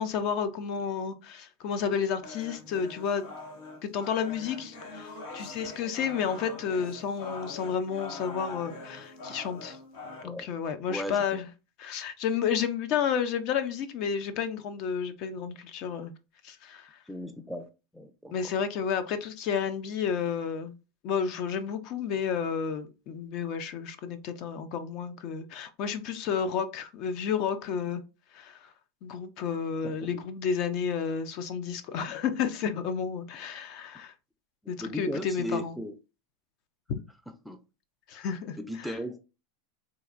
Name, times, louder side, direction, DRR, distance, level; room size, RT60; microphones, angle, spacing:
voice 1, 0.0-3.2 3.8-9.8 10.2-11.5 11.8-16.1 16.4-17.0 18.3-20.7 21.0-28.0 28.3-28.6 29.0-34.1 34.7-35.8 36.9-37.0 38.1-38.9, left 7 dB, 55° left, 0.5 m, -31 dB
sound 1, 2.2-10.2, left 3 dB, 80° left, 1.2 m, -43 dB
voice 2, 10.9-11.2 17.1-17.7 17.9-18.5 29.8-30.2 34.8-35.9 37.4-37.6 38.1-38.3 38.6-39.2, equal, ahead, 0.4 m, -36 dB
4.0 x 2.5 x 2.4 m
supercardioid pair, 120°, 0 cm